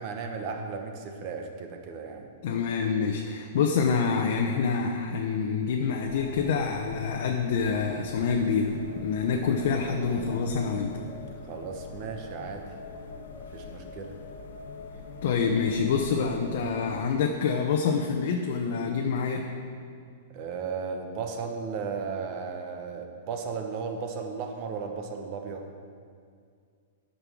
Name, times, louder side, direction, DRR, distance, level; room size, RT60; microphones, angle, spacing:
voice 1, 0.0-2.3 11.5-12.6 13.4-14.2 20.3-25.7, right 5 dB, 35° right, 4 dB, 1.0 m, -35 dB
voice 2, 2.4-11.0 15.2-19.4, left 5 dB, 60° left, 1 dB, 0.8 m, -27 dB
sound 1, 6.0-17.2, left 4 dB, 85° left, 1.2 m, -43 dB
10.0 x 5.6 x 6.2 m, 2.2 s
hypercardioid pair, 160°, 0 cm